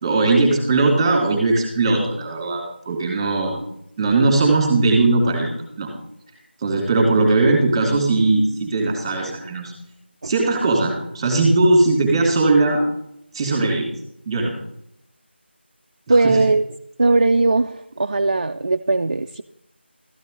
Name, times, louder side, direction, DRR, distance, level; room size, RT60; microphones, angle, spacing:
voice 1, 0.0-3.6 4.0-5.9 6.6-9.7 10.2-12.8 13.3-13.9 14.3-14.5 16.1-16.4, right 2 dB, 10° right, 2 dB, 2.2 m, -19 dB
voice 2, 16.1-16.6 17.0-19.4, right 3 dB, 35° right, 6 dB, 0.3 m, -18 dB
13.0 x 10.5 x 3.8 m, 0.75 s
figure-of-eight pair, 170°, 6 cm